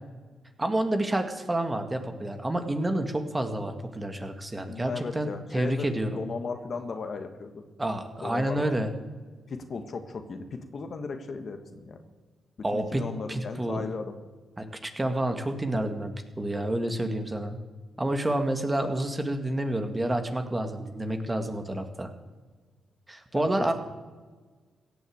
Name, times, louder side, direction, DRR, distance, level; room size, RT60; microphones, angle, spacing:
voice 1, 0.6-6.1 7.8-8.9 12.6-13.8 14.6-17.6 18.0-22.1 23.1-23.7, right 1 dB, 20° right, 6 dB, 1.9 m, -29 dB
voice 2, 4.7-7.6 8.2-8.8 9.5-12.0 12.7-14.1 16.5-16.7 18.8-18.9 23.3-23.7, left 4 dB, 55° left, 7 dB, 1.6 m, -36 dB
16.5 x 8.2 x 8.0 m, 1.4 s
supercardioid pair, 60°, 0 cm